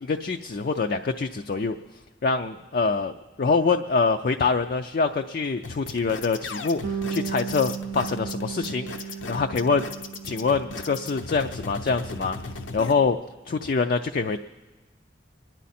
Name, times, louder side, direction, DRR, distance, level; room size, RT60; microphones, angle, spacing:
voice 1, 0.0-1.8 2.2-9.9 10.2-12.4 12.7-13.2 13.5-14.4, left 4 dB, 50° left, 6 dB, 0.4 m, -25 dB
sound 1, 5.6-12.9, left 4 dB, 80° left, 0.7 m, -37 dB
Bass guitar, 6.8-13.1, right 6 dB, 70° right, 0.6 m, -36 dB
24.0 x 10.5 x 4.2 m, 1.2 s
head